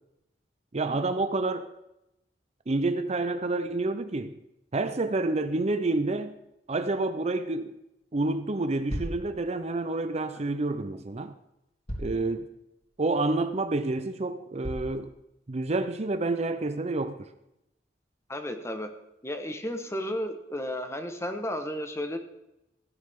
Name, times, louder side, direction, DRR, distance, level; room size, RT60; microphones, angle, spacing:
voice 1, 0.7-1.7 2.7-4.4 4.7-6.4 6.7-7.8 8.1-11.3 12.0-12.5 13.0-15.1 15.5-17.3, right 2 dB, 40° right, 0.6 m, -28 dB
sound 1, 8.9-9.2 10.8-10.9 11.9-12.2 12.8-12.9 13.5-13.6 14.6-15.0, equal, 35° left, 3.4 m, -35 dB
voice 2, 18.3-18.9 19.2-22.2, left 1 dB, 15° left, 1.2 m, -33 dB
15.5 x 9.8 x 3.7 m
head